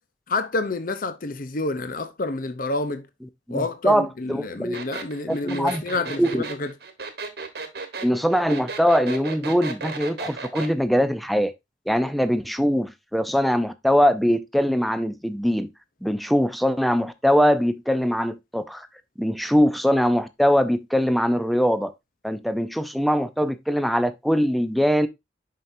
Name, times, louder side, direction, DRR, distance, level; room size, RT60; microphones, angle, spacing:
voice 1, 0.3-3.0 3.5-6.5, left 2 dB, 50° left, 0.6 m, -28 dB
voice 2, 3.5-4.8 5.3-5.8 6.2-6.4 8.0-11.5 11.9-15.7 16.0-18.9 19.2-21.9 22.2-25.1, equal, ahead, 0.5 m, -22 dB
sound 1, 4.7-10.7, right 4 dB, 60° right, 1.2 m, -34 dB
7.6 x 5.7 x 2.6 m
head